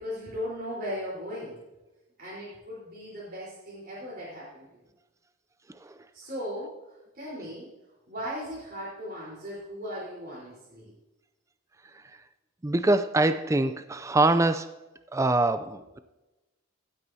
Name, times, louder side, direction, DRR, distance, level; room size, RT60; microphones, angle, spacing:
voice 1, 0.0-1.5 2.2-4.8 6.1-7.7 8.1-10.9, equal, 45° right, -8 dB, 3.9 m, -37 dB
voice 2, 12.6-14.8 15.1-16.0, right 2 dB, 15° right, 11 dB, 0.3 m, -24 dB
15.5 x 8.9 x 2.7 m, 1.0 s
head